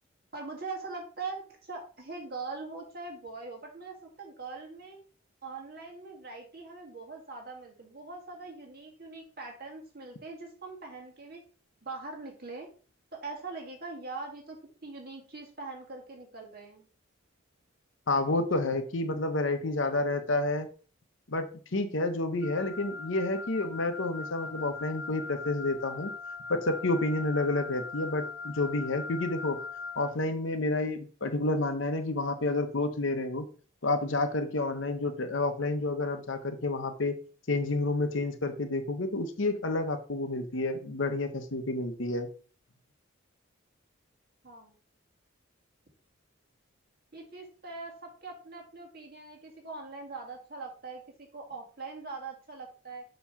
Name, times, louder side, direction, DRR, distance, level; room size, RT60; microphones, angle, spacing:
voice 1, 0.3-5.0 5.4-11.4 11.8-12.7 13.1-16.8 44.4-44.8 47.1-53.0, right 3 dB, 45° right, 1 dB, 1.9 m, -42 dB
voice 2, 18.1-20.7 21.3-21.5 21.7-26.1 26.5-29.6 30.0-33.5 33.8-37.2 37.5-42.3, left 2 dB, 65° left, 8 dB, 0.9 m, -29 dB
Wind instrument woodwind instrument, 22.4-30.2, left 4 dB, 15° right, 0.8 m, -40 dB
7.1 x 3.1 x 5.7 m, 0.39 s
head